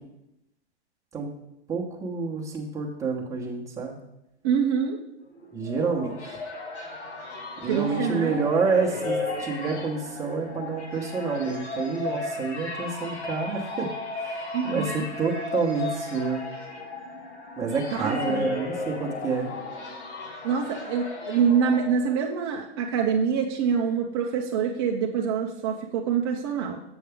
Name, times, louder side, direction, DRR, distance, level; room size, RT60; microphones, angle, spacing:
voice 1, 1.7-4.0 5.5-6.4 7.6-13.9 14.2-16.4 17.6-19.5, right 4 dB, 10° right, -2 dB, 1.0 m, -28 dB
voice 2, 4.4-5.0 7.7-8.3 14.5-15.1 18.0-18.5 20.4-26.8, right 7 dB, 25° right, 0 dB, 0.3 m, -25 dB
sound 1, 5.4-22.3, left 3 dB, 75° left, 2.3 m, -35 dB
6.9 x 6.3 x 3.5 m, 0.85 s
hypercardioid pair, 140°, 34 cm